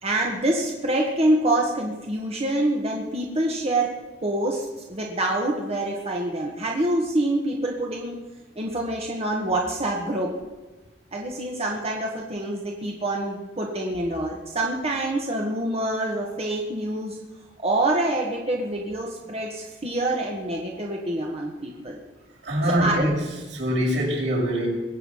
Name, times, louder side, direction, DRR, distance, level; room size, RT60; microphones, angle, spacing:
voice 1, 0.0-3.9 4.2-8.2 8.5-10.3 11.1-17.2 17.6-22.0 22.8-23.1, right 1 dB, 35° right, -1 dB, 1.6 m, -26 dB
voice 2, 22.4-24.7, equal, 80° right, -4 dB, 6.3 m, -24 dB
22.0 x 8.5 x 5.6 m, 1.2 s
head